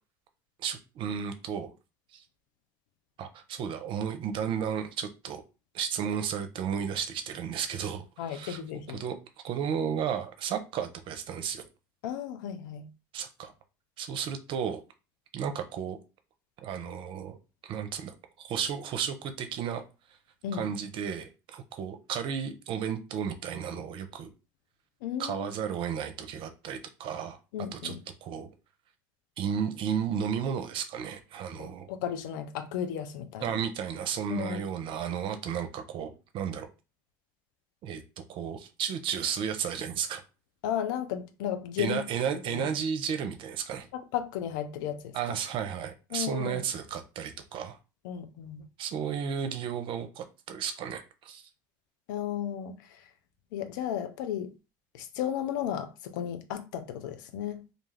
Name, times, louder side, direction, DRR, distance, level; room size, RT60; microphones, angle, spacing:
voice 1, 0.6-1.7 2.1-2.2 3.2-5.4 5.7-8.6 8.9-9.2 9.4-11.7 13.1-13.5 14.0-14.8 15.3-16.0 16.6-17.4 17.6-19.8 20.5-24.3 25.2-27.4 27.7-27.9 28.2-28.5 29.4-31.9 33.4-36.7 37.8-38.0 38.3-40.2 41.8-43.9 45.1-47.8 48.8-51.4, right 8 dB, 55° right, 0.6 m, -33 dB
voice 2, 8.2-9.0 12.0-12.9 20.4-20.7 25.0-25.5 27.5-28.0 31.6-33.5 34.3-34.7 40.6-42.0 42.5-42.7 43.9-45.3 46.1-46.6 48.0-48.7 52.1-53.1 53.5-54.5 54.9-57.6, left 9 dB, 80° left, 0.4 m, -34 dB
2.3 x 2.3 x 3.2 m
hypercardioid pair, 70°, 10 cm